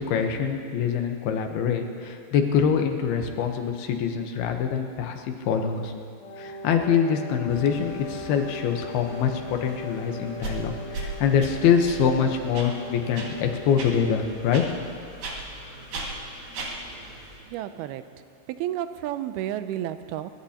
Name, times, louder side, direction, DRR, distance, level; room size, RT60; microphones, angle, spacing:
voice 1, 0.1-5.9 6.4-14.7, left 7 dB, 80° left, 4 dB, 3.0 m, -24 dB
Wind instrument woodwind instrument, 6.2-14.3, left 2 dB, 60° left, 3.0 m, -39 dB
sound 1, 7.5-17.4, equal, 15° left, 4.4 m, -47 dB
sound 2, 10.4-10.6 10.9-11.1 11.4-11.5 11.9-12.0 12.5-12.7 13.2-13.3 13.8-13.9 14.5-14.7 15.2-15.4 15.9-16.1 16.5-16.7, right 4 dB, 65° right, 3.6 m, -33 dB
voice 2, 16.9-17.2 17.4-18.1 18.5-20.3, right 12 dB, 85° right, 11 dB, 2.5 m, -32 dB
23.0 x 21.5 x 2.9 m, 2.2 s
omnidirectional pair, 4.4 m